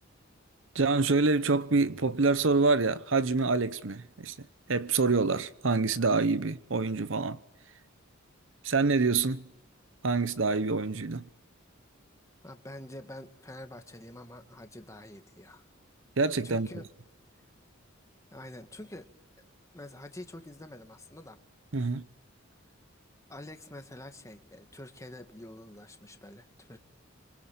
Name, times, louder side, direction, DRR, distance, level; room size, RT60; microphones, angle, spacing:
voice 1, 0.7-4.3 4.7-7.4 8.6-9.5 10.0-11.2 16.2-16.7 21.7-22.0, right 3 dB, 65° right, 0.9 m, -26 dB
voice 2, 12.4-15.7 16.4-16.9 18.3-19.1 19.7-21.4 23.3-26.8, left 1 dB, 15° left, 1.9 m, -46 dB
26.5 x 24.5 x 8.6 m
head